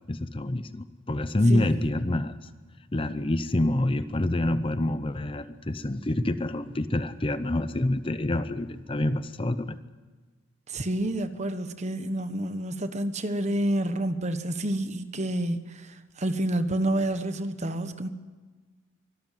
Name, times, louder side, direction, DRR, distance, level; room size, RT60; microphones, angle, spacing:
voice 1, 0.0-2.5 2.9-9.8, left 1 dB, 25° left, 12 dB, 0.7 m, -27 dB
voice 2, 10.7-15.8 16.2-18.1, right 1 dB, 35° right, 10 dB, 1.2 m, -28 dB
24.5 x 13.0 x 9.4 m, 1.4 s
head